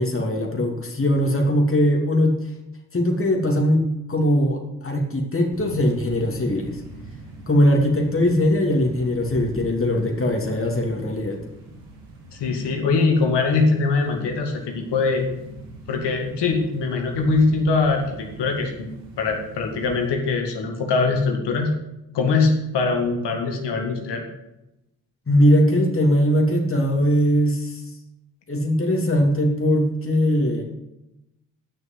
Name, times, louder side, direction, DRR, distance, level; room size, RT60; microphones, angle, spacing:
voice 1, 0.0-2.4 2.9-6.7 7.4-11.4 25.3-27.8 28.5-30.6, equal, 30° left, 1 dB, 2.9 m, -20 dB
sound 1, 5.5-20.1, right 2 dB, 85° right, 2.2 m, -42 dB
voice 2, 12.4-15.2 15.9-21.7 22.1-24.2, left 4 dB, 70° left, 2 dB, 2.0 m, -22 dB
10.5 x 6.4 x 7.8 m, 0.91 s
hypercardioid pair, 40°, 42 cm